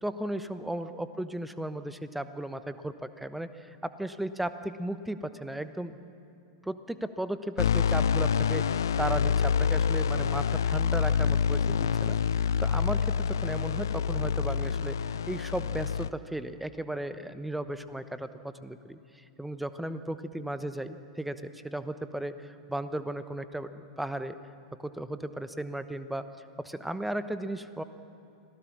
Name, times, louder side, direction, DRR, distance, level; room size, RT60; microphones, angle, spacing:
voice 1, 0.0-6.0 6.6-24.4 24.8-26.2 26.6-27.8, right 1 dB, 5° right, 11 dB, 1.0 m, -35 dB
sound 1, 7.6-16.1, left 7 dB, 70° left, 0.4 m, -27 dB
26.5 x 17.0 x 7.3 m, 2.6 s
figure-of-eight pair, 90°, 2 cm